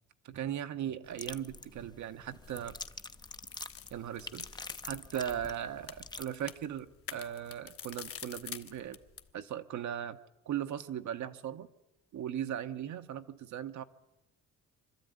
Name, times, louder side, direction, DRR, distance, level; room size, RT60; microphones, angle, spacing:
voice 1, 0.2-2.7 3.9-4.5 4.8-9.0 9.3-10.2 10.4-11.7 12.1-13.8, right 10 dB, 70° right, 9 dB, 1.2 m, -38 dB
sound 1, 1.0-6.2, left 3 dB, 15° left, 0.7 m, -46 dB
sound 2, 2.3-9.3, left 7 dB, 50° left, 1.3 m, -48 dB
25.0 x 12.5 x 9.5 m, 1.0 s
cardioid pair, 90°, 30 cm